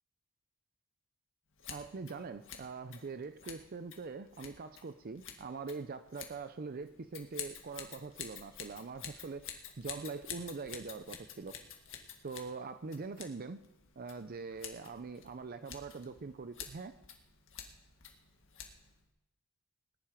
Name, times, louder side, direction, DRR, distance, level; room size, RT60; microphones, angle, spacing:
Scissors, 1.6-19.0, left 8 dB, 60° left, 1.8 m, -50 dB
voice 1, 1.7-11.6 12.2-13.6 14.0-17.0, right 4 dB, 45° right, 11 dB, 0.5 m, -43 dB
19.0 x 10.5 x 5.0 m, 0.86 s
head